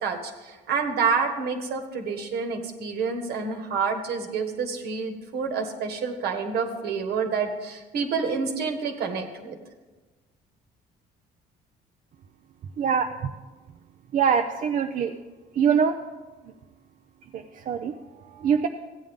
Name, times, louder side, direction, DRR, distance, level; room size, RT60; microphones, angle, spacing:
voice 1, 0.0-9.6, right 5 dB, 70° right, 4 dB, 1.4 m, -28 dB
voice 2, 12.8-13.3 14.1-15.1 15.5-16.0 17.3-18.7, right 7 dB, 50° right, 5 dB, 0.5 m, -24 dB
14.5 x 8.9 x 3.6 m, 1.3 s
cardioid pair, 110°, 17 cm